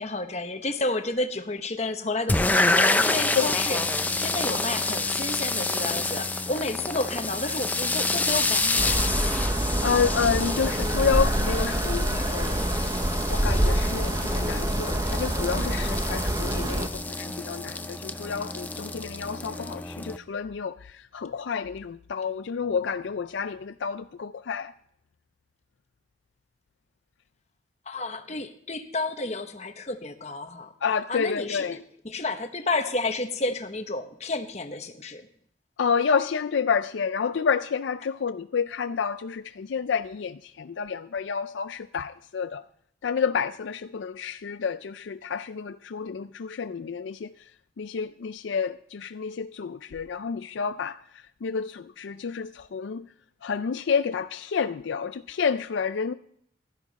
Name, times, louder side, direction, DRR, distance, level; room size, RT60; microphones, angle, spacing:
voice 1, 0.0-9.0 27.9-30.7 31.1-31.8 32.0-35.2, left 2 dB, 35° left, 1.1 m, -31 dB
sound 1, 2.3-20.2, left 2 dB, 10° left, 0.4 m, -28 dB
voice 2, 4.5-4.9 9.8-12.6 13.3-24.7 30.8-31.8 35.8-42.6 43.0-47.3 47.8-51.0 51.4-53.1 53.4-56.1, left 6 dB, 75° left, 0.4 m, -29 dB
sound 2, 8.8-16.9, right 1 dB, 20° right, 0.9 m, -26 dB
15.5 x 13.0 x 4.1 m
head